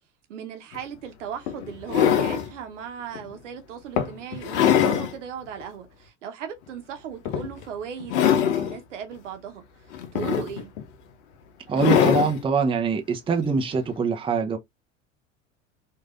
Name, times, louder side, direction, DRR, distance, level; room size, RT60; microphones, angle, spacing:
voice 1, 0.3-9.6 10.1-10.7, right 8 dB, 70° right, 0.9 m, -37 dB
sound 1, 0.7-0.8 1.5-2.5 3.1-3.3 4.0-5.1 5.6-5.7 7.2-7.6 8.0-8.8 9.9-10.8 11.7-12.4 13.7-13.8, left 9 dB, 65° left, 0.8 m, -22 dB
voice 2, 11.7-14.6, right 5 dB, 15° right, 0.6 m, -24 dB
4.7 x 2.6 x 2.4 m
figure-of-eight pair, 70°, 38 cm